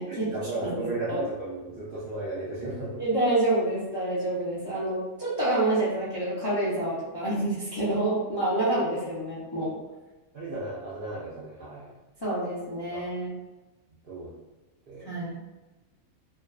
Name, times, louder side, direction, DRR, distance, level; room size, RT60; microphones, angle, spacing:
voice 1, 0.1-3.0 10.3-11.9 12.9-13.1 14.0-14.3 14.9-15.1, right 2 dB, 65° right, -8 dB, 0.5 m, -35 dB
voice 2, 0.6-1.2 3.0-9.8 12.2-13.3 15.1-15.4, right 1 dB, 40° left, -10 dB, 0.3 m, -28 dB
2.5 x 2.2 x 2.3 m, 1.1 s
omnidirectional pair, 1.4 m